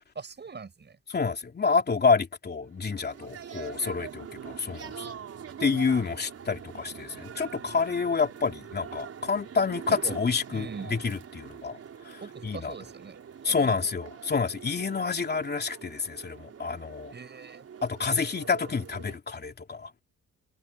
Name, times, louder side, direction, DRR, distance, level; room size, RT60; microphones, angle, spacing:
voice 1, 0.1-1.0 3.5-3.9 9.9-10.2 10.5-10.9 12.2-13.2 13.5-13.8 17.1-17.7, right 5 dB, 35° right, 6.9 m, -42 dB
voice 2, 1.1-4.9 5.6-11.8 12.4-12.8 13.4-17.1 17.8-20.0, left 5 dB, 35° left, 3.0 m, -28 dB
sound 1, 2.7-19.2, right 8 dB, 55° right, 4.5 m, -44 dB
cardioid pair, 90°, 30 cm